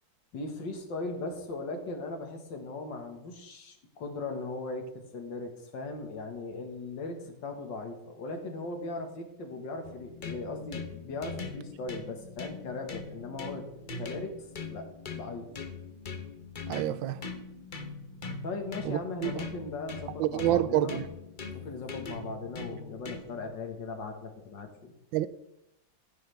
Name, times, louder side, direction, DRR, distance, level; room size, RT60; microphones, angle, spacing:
voice 1, 0.3-13.6 14.0-14.9 15.1-15.5 18.4-21.1 21.5-25.0, left 3 dB, 70° left, 2.2 m, -38 dB
sound 1, 9.8-23.5, left 4 dB, 35° left, 0.8 m, -41 dB
voice 2, 16.7-17.2 18.8-19.3 20.2-21.0 25.1-25.3, right 14 dB, 90° right, 1.3 m, -28 dB
15.0 x 9.1 x 3.4 m
omnidirectional pair, 2.1 m